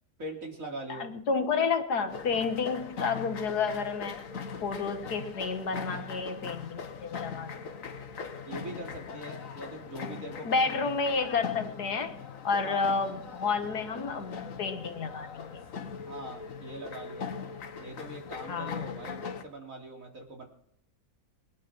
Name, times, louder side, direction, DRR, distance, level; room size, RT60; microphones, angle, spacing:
voice 1, 0.2-1.1 8.5-11.0 12.6-12.9 16.0-17.4 17.8-20.5, right 1 dB, 55° right, 1 dB, 3.8 m, -42 dB
voice 2, 0.9-4.3 4.6-7.7 10.4-12.2 12.4-15.6 18.5-18.9, left 5 dB, 85° left, 8 dB, 2.1 m, -30 dB
sound 1, 2.1-19.4, left 6 dB, 60° left, 1.5 m, -41 dB
21.5 x 10.5 x 6.1 m, 0.74 s
omnidirectional pair, 1.7 m